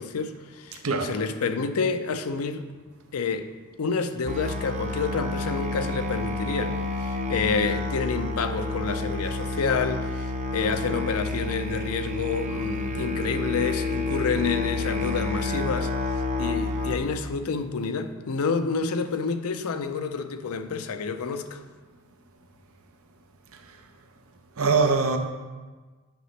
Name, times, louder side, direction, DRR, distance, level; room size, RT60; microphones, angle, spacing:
voice 1, 0.0-2.7 3.1-3.5 3.8-15.9 16.4-21.6, left 5 dB, 90° left, 0.5 m, -28 dB
voice 2, 0.7-1.2 23.5-23.8 24.6-25.2, right 4 dB, 70° right, 0.7 m, -24 dB
Musical instrument, 4.3-17.0, left 2 dB, 35° right, 0.6 m, -29 dB
9.5 x 5.9 x 3.2 m
head